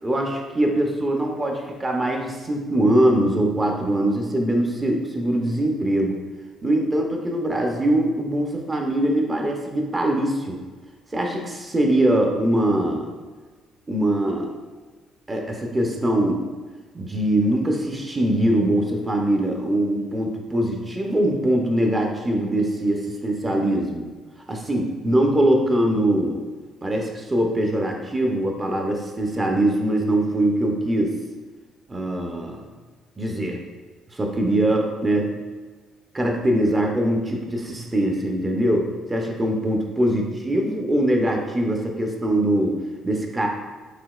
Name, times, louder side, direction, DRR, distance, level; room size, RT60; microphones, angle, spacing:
voice 1, 0.0-6.2 6.6-10.6 11.1-13.1 13.9-14.5 15.3-16.5 16.9-24.1 24.5-26.5 26.8-31.2 31.9-32.7 33.2-33.6 34.1-35.4 36.1-43.5, right 1 dB, 20° right, 1 dB, 0.7 m, -22 dB
5.0 x 3.5 x 2.4 m, 1.4 s
cardioid pair, 105°, 0 cm